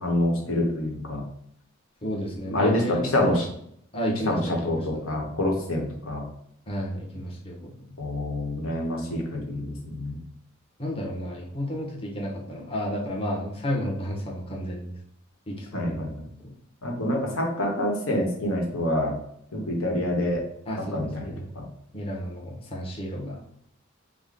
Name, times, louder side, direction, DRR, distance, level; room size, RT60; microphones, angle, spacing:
voice 1, 0.0-1.2 2.5-3.5 4.3-6.2 8.0-10.2 15.7-16.3 16.8-19.1 19.5-20.4 20.9-21.7, left 1 dB, 85° left, 0 dB, 1.1 m, -27 dB
voice 2, 2.0-3.5 3.9-5.0 6.7-7.7 10.8-14.9 15.5-16.5 20.7-21.5 21.9-23.4, equal, 30° left, -3 dB, 1.0 m, -32 dB
5.0 x 2.2 x 3.8 m, 0.69 s
head